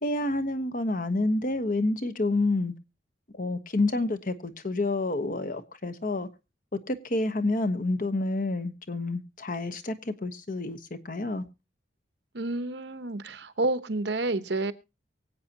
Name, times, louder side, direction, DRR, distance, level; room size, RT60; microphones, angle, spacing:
voice 1, 0.0-2.7 3.3-6.3 6.9-10.8 11.0-11.4, left 2 dB, 45° left, 1.1 m, -28 dB
voice 2, 12.3-14.7, right 2 dB, 60° right, 0.9 m, -29 dB
24.0 x 8.4 x 2.9 m
head